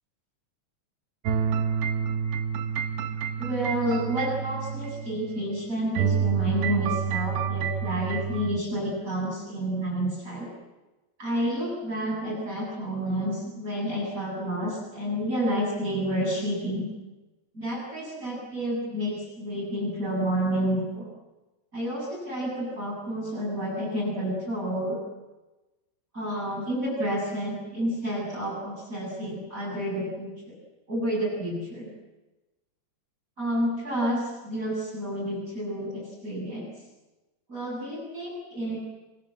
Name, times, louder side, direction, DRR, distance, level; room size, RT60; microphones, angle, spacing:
sound 1, 1.3-5.6 6.0-8.6, right 7 dB, 75° right, 3.3 m, -28 dB
voice 1, 3.4-10.5 11.2-16.9 17.5-21.1 21.7-25.0 26.1-30.5 30.9-31.9 33.4-36.7 37.5-38.8, equal, 15° right, -2 dB, 8.3 m, -30 dB
26.5 x 26.5 x 7.6 m, 1.1 s
omnidirectional pair, 5.1 m